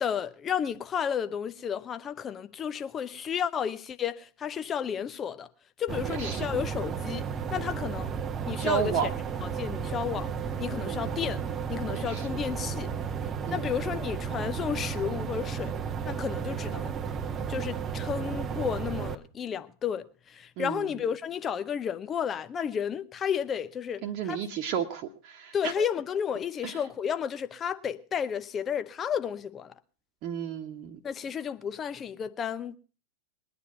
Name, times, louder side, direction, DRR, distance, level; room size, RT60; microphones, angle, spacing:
voice 1, 0.0-5.5 5.8-8.1 8.5-9.1 9.4-10.3 10.6-11.4 11.7-12.9 13.5-15.8 16.0-17.0 17.5-24.4 25.5-29.7 31.0-32.8, left 8 dB, 25° left, 0.8 m, -32 dB
sound 1, 5.9-19.2, right 7 dB, 25° right, 0.9 m, -33 dB
voice 2, 5.9-6.5 8.6-9.1 10.8-11.1 11.9-12.3 13.5-13.7 20.6-20.9 24.0-25.9 26.6-26.7 30.2-31.0, right 8 dB, 40° right, 1.3 m, -33 dB
21.0 x 9.7 x 5.6 m
figure-of-eight pair, 90°, 0 cm